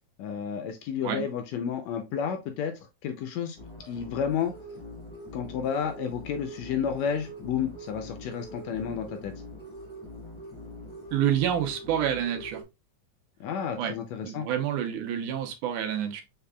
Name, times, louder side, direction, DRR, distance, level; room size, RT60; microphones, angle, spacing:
voice 1, 0.2-2.7 3.0-3.6 3.8-4.5 5.3-9.3 13.4-14.5, left 7 dB, 80° left, 1.6 m, -31 dB
sound 1, 3.6-12.6, equal, 15° left, 1.0 m, -43 dB
voice 2, 11.1-12.6 13.8-16.2, right 10 dB, 80° right, 2.3 m, -28 dB
5.7 x 3.6 x 2.2 m
omnidirectional pair, 3.5 m